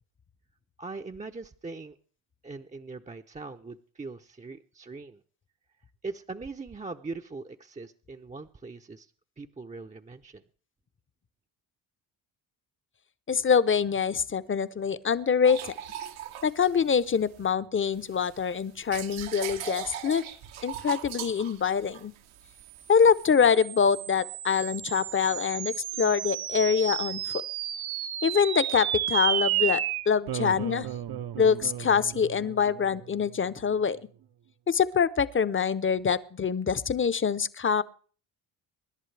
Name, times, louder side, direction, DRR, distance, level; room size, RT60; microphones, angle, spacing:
voice 1, 0.8-2.0 2.4-5.2 6.0-9.1 9.4-10.4, right 3 dB, 15° right, 0.6 m, -41 dB
voice 2, 13.3-15.7 16.4-20.2 20.6-22.1 22.9-27.2 28.2-30.9 31.4-34.0 34.7-37.8, left 6 dB, 25° left, 0.7 m, -25 dB
sound 1, 15.4-17.5 17.9-23.3, right 10 dB, 80° right, 1.3 m, -40 dB
sound 2, 22.8-33.5, right 11 dB, 55° right, 0.8 m, -33 dB
25.5 x 11.0 x 3.3 m
supercardioid pair, 70°, 47 cm